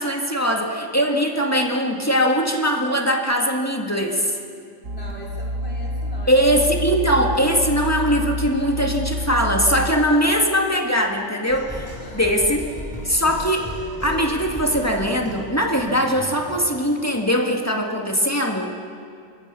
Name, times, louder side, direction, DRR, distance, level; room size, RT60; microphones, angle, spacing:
voice 1, 0.0-4.4 6.3-12.6 13.0-13.7 14.0-18.7, equal, 10° left, 1 dB, 2.0 m, -21 dB
sound 1, 4.8-9.9, equal, 75° right, 1.9 m, -28 dB
voice 2, 4.9-6.8 12.0-12.3 12.6-13.1, equal, 50° left, -3 dB, 5.6 m, -41 dB
sound 2, 11.5-16.7, equal, 15° right, 7.7 m, -35 dB
27.5 x 22.0 x 6.9 m, 2.3 s
omnidirectional pair, 1.3 m